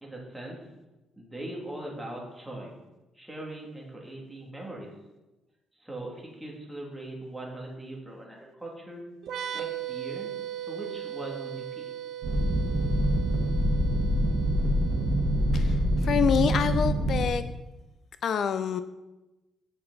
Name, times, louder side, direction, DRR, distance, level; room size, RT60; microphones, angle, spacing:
voice 1, 0.0-0.6 1.2-2.8 3.1-4.9 5.8-9.0 9.5-10.3 10.7-11.9, right 1 dB, 10° right, -2 dB, 2.5 m, -40 dB
sound 1, 9.2-16.7, right 11 dB, 70° right, 0.7 m, -39 dB
sound 2, 12.2-17.3, right 1 dB, 55° right, 1.7 m, -25 dB
voice 2, 15.5-17.4 18.2-18.8, left 7 dB, 60° left, 12 dB, 0.4 m, -27 dB
8.6 x 6.9 x 4.0 m, 1.1 s
cardioid pair, 90°, 0 cm